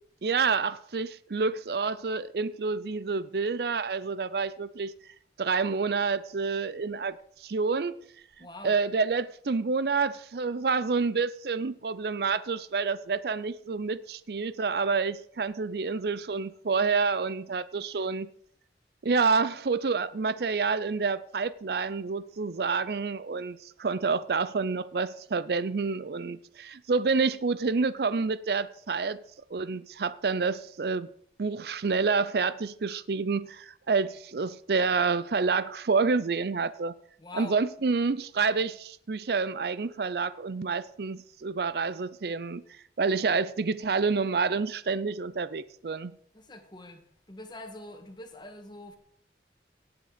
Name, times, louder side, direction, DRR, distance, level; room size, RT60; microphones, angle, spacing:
voice 1, 0.2-4.9 5.4-8.0 8.6-18.3 19.0-29.2 29.5-31.1 31.4-36.9 37.3-42.6 43.0-46.1, right 4 dB, 60° right, 0.5 m, -28 dB
voice 2, 8.4-8.8 37.2-37.6 46.3-47.0 47.3-49.0, left 2 dB, 25° left, 1.7 m, -44 dB
17.5 x 8.0 x 5.0 m
head